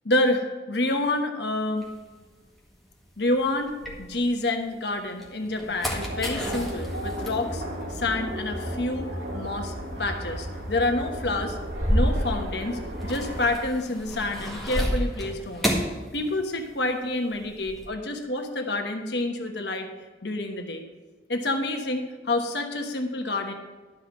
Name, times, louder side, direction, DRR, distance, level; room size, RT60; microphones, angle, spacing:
voice 1, 0.0-1.9 3.2-7.6 7.9-9.7 10.0-11.6 11.9-15.7 16.1-19.9 20.2-20.8 21.3-23.5, left 2 dB, 60° left, 3 dB, 1.2 m, -28 dB
sound 1, 1.8-4.6 5.0-16.8 17.0-17.9, equal, ahead, 1.8 m, -32 dB
sound 2, 6.0-13.5, equal, 70° right, 2.1 m, -34 dB
12.0 x 5.7 x 7.3 m, 1.3 s
head